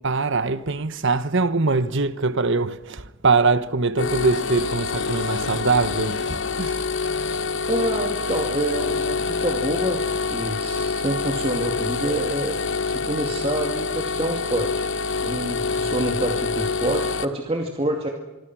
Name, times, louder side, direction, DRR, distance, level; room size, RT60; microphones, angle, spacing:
voice 1, 0.0-6.9, right 3 dB, 55° right, 1.1 m, -22 dB
sound 1, 4.0-17.2, left 4 dB, 55° left, 1.0 m, -26 dB
voice 2, 7.7-12.6 12.9-18.1, right 1 dB, 25° right, 2.4 m, -27 dB
25.5 x 24.5 x 6.2 m
head